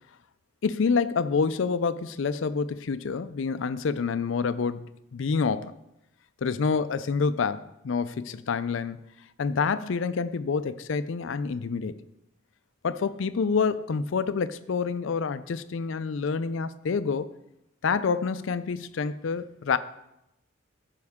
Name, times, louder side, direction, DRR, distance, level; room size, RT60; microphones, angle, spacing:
voice 1, 0.6-5.7 6.4-9.0 9.4-11.9 12.8-17.3 17.8-19.8, left 5 dB, 70° left, 13 dB, 0.4 m, -27 dB
14.0 x 5.3 x 3.6 m, 0.87 s
head